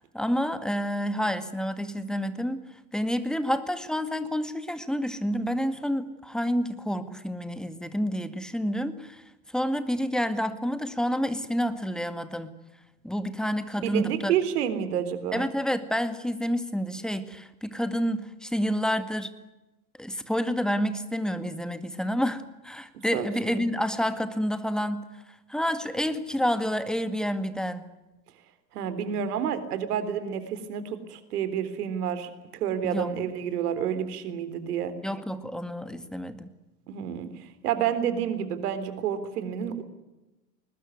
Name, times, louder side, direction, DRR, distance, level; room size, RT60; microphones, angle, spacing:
voice 1, 0.0-2.6 2.9-9.2 9.5-12.5 13.0-14.3 15.3-19.3 20.0-25.1 25.5-27.8 32.8-33.1 35.0-36.5, equal, ahead, 11 dB, 2.0 m, -29 dB
voice 2, 13.8-15.5 23.1-23.6 28.7-34.9 36.9-39.8, right 9 dB, 60° right, 11 dB, 3.8 m, -29 dB
21.5 x 20.5 x 9.6 m, 1.0 s
hypercardioid pair, 95°, 50 cm